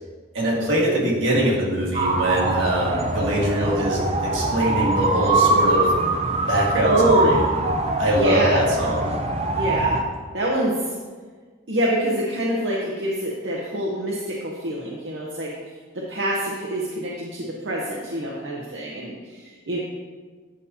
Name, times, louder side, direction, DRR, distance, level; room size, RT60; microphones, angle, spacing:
voice 1, 0.3-5.9 6.5-7.4 8.0-9.1, right 1 dB, 80° right, -4 dB, 1.8 m, -22 dB
sound 1, 1.9-10.0, right 2 dB, 30° right, 0.5 m, -23 dB
voice 2, 6.8-7.3 8.1-8.6 9.5-10.0 10.3-10.9 11.7-15.5 15.9-19.8, right 1 dB, 65° right, -4 dB, 0.8 m, -25 dB
8.8 x 5.5 x 2.8 m, 1.5 s
head